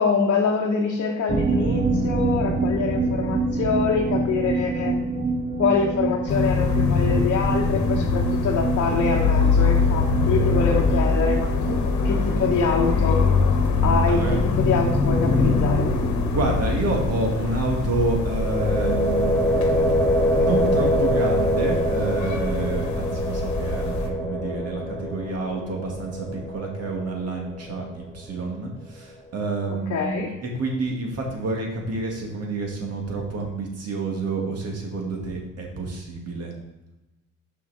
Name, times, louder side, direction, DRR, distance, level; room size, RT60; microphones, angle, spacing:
voice 1, 0.0-4.9 5.6-13.2 13.8-15.9 29.9-30.3, left 5 dB, 55° left, -1 dB, 1.0 m, -25 dB
sound 1, 1.3-16.7 16.9-17.0 17.3-17.4, right 3 dB, 20° right, 0.6 m, -27 dB
sound 2, 6.3-24.1, left 4 dB, 70° left, 1.2 m, -23 dB
voice 2, 14.1-14.4 16.2-19.9 20.3-36.6, right 2 dB, 55° right, 0 dB, 2.0 m, -29 dB
sound 3, 18.2-28.1, equal, 5° left, 2.1 m, -25 dB
6.1 x 5.8 x 4.1 m, 1.0 s
cardioid pair, 90°, 30 cm